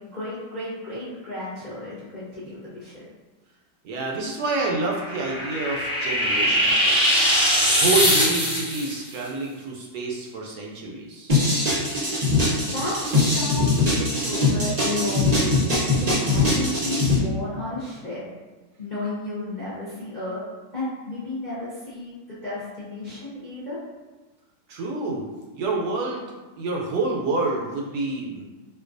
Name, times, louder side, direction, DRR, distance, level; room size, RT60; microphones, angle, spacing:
voice 1, 0.1-3.0 12.7-15.6 16.0-18.2 18.8-20.4 20.7-23.8, left 2 dB, 40° left, -10 dB, 0.6 m, -33 dB
voice 2, 3.8-7.2 7.8-11.3 24.7-25.2 25.5-26.3 26.6-28.4, right 3 dB, 75° right, -2 dB, 1.0 m, -28 dB
sound 1, 4.8-8.9, equal, 5° right, 0.7 m, -21 dB
sound 2, 11.3-17.2, left 2 dB, 50° right, 0.5 m, -21 dB
4.4 x 2.3 x 2.5 m, 1.2 s
omnidirectional pair, 1.8 m